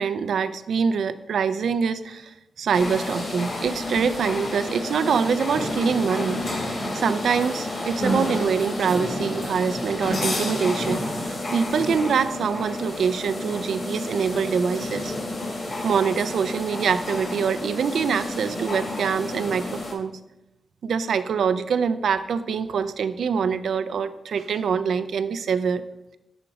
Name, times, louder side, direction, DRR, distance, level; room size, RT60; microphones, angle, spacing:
voice 1, 0.0-6.4 6.7-15.1 15.8-20.2 20.8-25.8, right 6 dB, 75° right, 12 dB, 0.3 m, -25 dB
sound 1, 2.7-19.9, left 1 dB, 40° left, 1.1 m, -30 dB
5.9 x 3.9 x 4.7 m, 0.93 s
wide cardioid pair, 140°, 0 cm